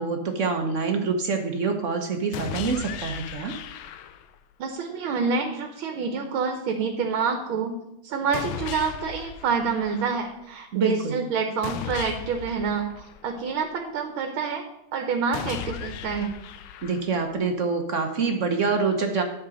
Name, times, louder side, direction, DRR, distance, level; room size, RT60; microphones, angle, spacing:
voice 1, 0.0-3.5 10.7-11.2 16.8-19.2, right 4 dB, 50° right, 4 dB, 1.0 m, -26 dB
sound 1, 2.3-4.4 8.3-10.3 11.6-13.6 15.3-17.3, left 9 dB, 80° left, 1.4 m, -37 dB
voice 2, 4.6-7.8 8.0-12.9 13.2-14.6 14.9-16.3, right 5 dB, 85° right, 5 dB, 1.8 m, -27 dB
10.5 x 4.9 x 6.2 m, 0.86 s
omnidirectional pair, 2.2 m